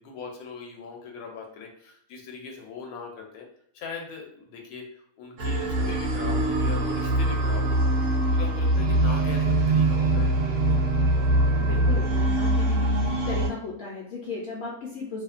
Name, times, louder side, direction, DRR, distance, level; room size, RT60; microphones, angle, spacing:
voice 1, 0.0-3.5 3.7-10.3, left 4 dB, 90° left, 1 dB, 1.1 m, -40 dB
sound 1, 5.4-13.5, right 1 dB, 65° right, 0.8 m, -23 dB
voice 2, 11.6-12.9 13.3-15.2, left 3 dB, 65° left, -4 dB, 0.6 m, -35 dB
2.7 x 2.1 x 2.4 m, 0.67 s
omnidirectional pair, 1.5 m